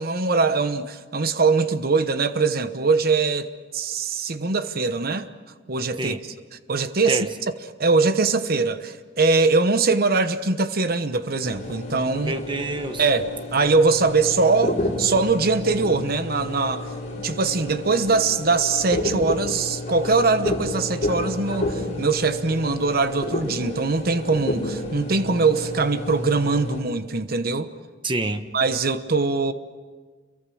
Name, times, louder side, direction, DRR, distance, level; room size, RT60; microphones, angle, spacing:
voice 1, 0.0-3.5 3.7-5.3 5.7-6.2 6.7-7.5 7.8-12.3 13.0-16.8 17.2-27.7 28.5-29.5, right 4 dB, 55° right, 1.1 m, -22 dB
sound 1, 11.4-26.8, left 1 dB, 40° left, 4.8 m, -30 dB
voice 2, 12.2-13.0 28.0-28.5, right 2 dB, 25° right, 1.1 m, -27 dB
28.0 x 23.0 x 6.4 m
head